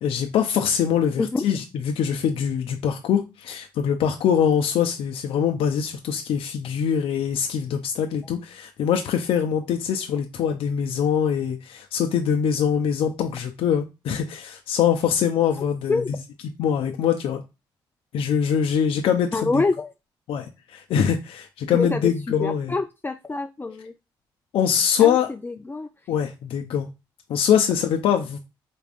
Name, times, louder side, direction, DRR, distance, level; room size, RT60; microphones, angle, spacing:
voice 1, 0.0-16.0 16.6-17.4 18.1-19.6 20.3-22.7 24.5-25.3 26.1-26.9 27.3-28.4, left 8 dB, 75° left, 0.5 m, -23 dB
voice 2, 19.3-19.9 21.7-22.1 22.4-23.9 25.0-25.2 25.4-25.9, left 3 dB, 20° left, 0.5 m, -25 dB
4.1 x 3.4 x 2.5 m
supercardioid pair, 55°, 10 cm